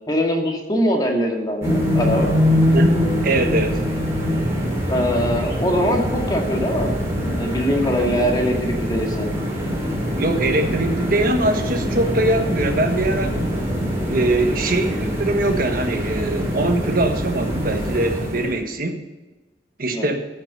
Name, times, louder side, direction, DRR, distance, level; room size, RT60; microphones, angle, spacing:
voice 1, 0.1-2.3 4.9-6.9 7.2-9.3 19.9-20.2, equal, 25° left, 0 dB, 1.9 m, -22 dB
sound 1, 1.6-18.6, equal, 15° right, 2.9 m, -23 dB
voice 2, 2.7-3.8 10.2-13.3 14.1-19.0 19.8-20.2, right 2 dB, 55° right, 5 dB, 1.4 m, -22 dB
14.0 x 6.0 x 6.8 m, 1.2 s
head